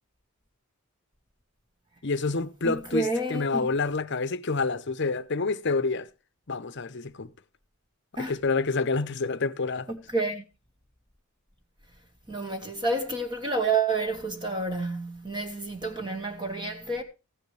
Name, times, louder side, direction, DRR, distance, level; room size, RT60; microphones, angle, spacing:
voice 1, 2.0-6.1 6.5-7.3 8.2-9.9, left 3 dB, 50° left, 0.8 m, -28 dB
voice 2, 2.6-3.7 8.2-8.4 9.9-10.4 12.3-17.0, right 3 dB, 20° right, 1.3 m, -29 dB
15.0 x 9.4 x 3.2 m
head